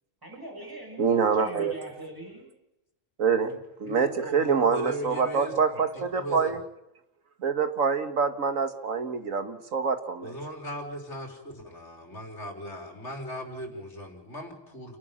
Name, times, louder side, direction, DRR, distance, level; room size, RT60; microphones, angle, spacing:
voice 1, 0.2-2.5, right 1 dB, 15° right, 1 dB, 6.1 m, -42 dB
voice 2, 1.0-1.7 3.2-3.5 3.8-6.6 7.4-10.3, right 5 dB, 85° right, 9 dB, 2.0 m, -25 dB
voice 3, 3.4-5.6 5.9-6.6 10.2-15.0, equal, 60° left, 3 dB, 4.0 m, -38 dB
29.0 x 11.5 x 8.8 m, 0.90 s
omnidirectional pair, 1.4 m